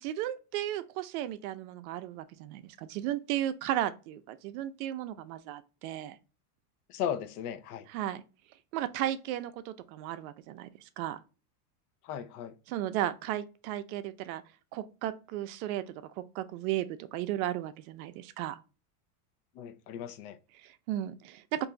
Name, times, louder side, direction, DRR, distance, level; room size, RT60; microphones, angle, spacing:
voice 1, 0.0-6.2 7.9-8.2 8.7-11.2 12.7-14.4 14.7-18.6 20.5-21.7, right 12 dB, 65° right, 0.5 m, -35 dB
voice 2, 6.9-7.8 12.1-12.5 19.6-20.3, left 9 dB, 70° left, 0.7 m, -36 dB
2.6 x 2.3 x 3.8 m
supercardioid pair, 135°, 47 cm